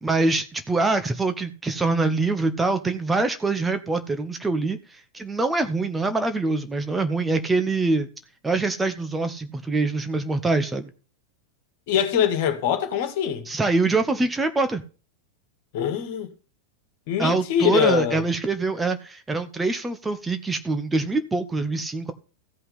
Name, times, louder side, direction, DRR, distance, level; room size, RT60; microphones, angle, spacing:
voice 1, 0.0-8.1 8.4-10.9 13.5-14.8 17.2-22.1, right 3 dB, 10° right, 1.0 m, -24 dB
voice 2, 11.9-13.5 15.7-16.3 17.1-18.2, left 9 dB, 50° left, 2.0 m, -23 dB
15.0 x 5.7 x 5.5 m
figure-of-eight pair, 90°, 0 cm